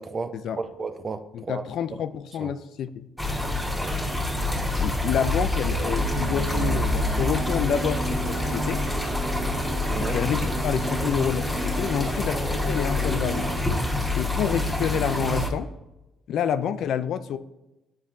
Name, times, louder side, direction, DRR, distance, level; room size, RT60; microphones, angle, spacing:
voice 1, 0.0-1.6 2.4-2.5 3.7-4.0 9.9-10.2, right 4 dB, 35° right, 9 dB, 0.5 m, -33 dB
voice 2, 1.3-3.1 4.8-8.8 10.0-13.5 14.2-15.7 16.3-17.4, left 8 dB, 75° left, 12 dB, 0.3 m, -28 dB
sound 1, 3.2-15.5, left 1 dB, ahead, 1.2 m, -27 dB
sound 2, 5.8-13.5, right 2 dB, 65° right, 1.2 m, -34 dB
9.0 x 4.1 x 2.5 m, 0.97 s
cardioid pair, 90°, 0 cm